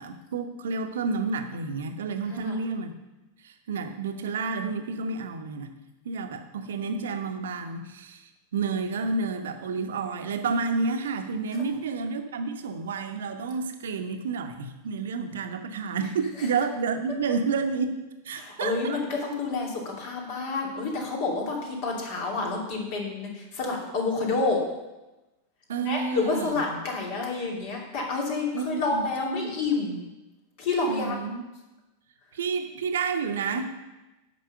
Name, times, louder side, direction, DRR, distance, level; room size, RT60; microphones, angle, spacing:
voice 1, 0.0-2.9 3.4-5.7 6.0-18.0 18.2-19.0 25.7-26.8 28.5-29.5 30.9-31.5 32.3-33.6, right 4 dB, 60° right, 6 dB, 1.0 m, -30 dB
voice 2, 18.3-24.6 25.8-30.0 30.6-31.2, left 3 dB, 45° left, -1 dB, 2.7 m, -29 dB
9.4 x 5.9 x 6.8 m, 1.0 s
figure-of-eight pair, 90°, 0 cm